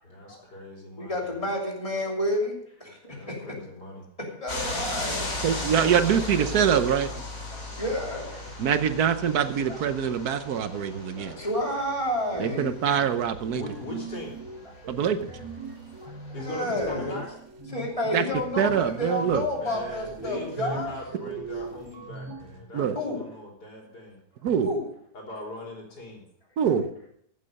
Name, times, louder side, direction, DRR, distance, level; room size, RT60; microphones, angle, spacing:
voice 1, 0.0-1.3 3.1-4.1 13.5-14.4 15.0-15.1 16.3-17.3 19.5-24.2 25.1-26.2, left 2 dB, 80° left, -1 dB, 4.2 m, -40 dB
voice 2, 1.0-2.5 2.8-3.6 4.2-5.5 7.5-8.7 9.7-9.8 10.5-12.7 15.3-15.4 16.0-17.2 17.7-20.9 22.9-23.2 24.6-24.8 26.6-26.8, left 1 dB, 20° left, -1 dB, 3.0 m, -31 dB
sound 1, 4.5-16.5, left 2 dB, 55° left, 3.3 m, -37 dB
voice 3, 5.4-7.2 8.6-11.3 12.4-13.6 14.9-15.3 18.1-18.2 18.6-19.4 22.7-23.0 24.4-24.7 26.6-26.8, right 8 dB, 70° right, 10 dB, 1.3 m, -24 dB
sound 2, 12.3-22.6, right 3 dB, 50° right, 3.3 m, -41 dB
15.0 x 7.7 x 5.2 m, 0.68 s
omnidirectional pair, 1.7 m